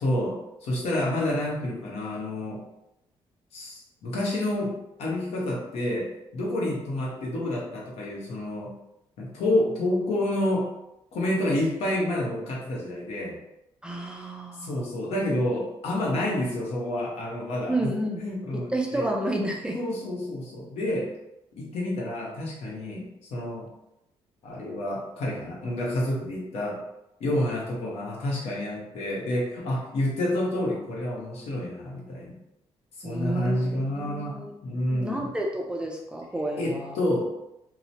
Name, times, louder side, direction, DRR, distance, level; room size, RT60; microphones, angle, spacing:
voice 1, 0.0-2.6 3.5-8.7 9.2-10.7 11.1-13.4 14.6-17.7 18.2-19.1 19.7-21.1 21.6-23.0 23.3-23.7 24.4-26.8 27.2-32.3 33.0-35.3 36.6-37.3, left 1 dB, 80° left, -4 dB, 1.0 m, -29 dB
voice 2, 13.8-14.7 17.7-18.2 18.5-19.8 33.0-34.5 34.9-36.9, right 1 dB, 10° right, 0 dB, 0.3 m, -30 dB
2.9 x 2.1 x 2.7 m, 0.85 s
cardioid pair, 145°, 10 cm